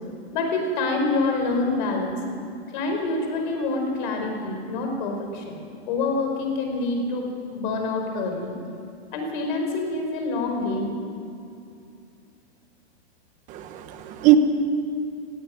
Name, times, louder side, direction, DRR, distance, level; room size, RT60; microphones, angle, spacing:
voice 1, 0.3-2.2 2.7-8.6 9.1-10.9, left 3 dB, 45° left, 3 dB, 4.8 m, -26 dB
voice 2, 13.5-14.4, right 17 dB, 25° right, 8 dB, 1.2 m, -20 dB
17.5 x 16.0 x 9.5 m, 2.6 s
supercardioid pair, 165°, 33 cm